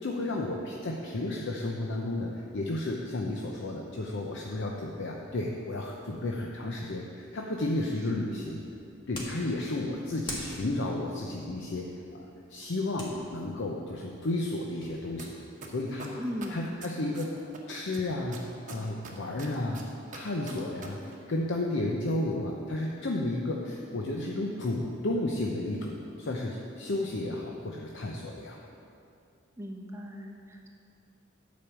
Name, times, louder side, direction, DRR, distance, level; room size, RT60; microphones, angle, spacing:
voice 1, 0.0-8.6 9.1-15.3 15.7-16.1 16.5-17.3 17.7-19.8 20.1-28.6, left 2 dB, 60° left, -1 dB, 0.7 m, -32 dB
sound 1, 8.3-15.0, left 1 dB, 25° left, 1.7 m, -46 dB
sound 2, 15.2-15.3 15.6-17.6 17.9-20.9 21.1-21.2, right 4 dB, 40° right, 1.2 m, -43 dB
voice 2, 16.2-16.7 20.5-20.9 29.6-30.7, equal, 15° right, 0 dB, 1.0 m, -38 dB
10.0 x 5.2 x 7.3 m, 2.5 s
head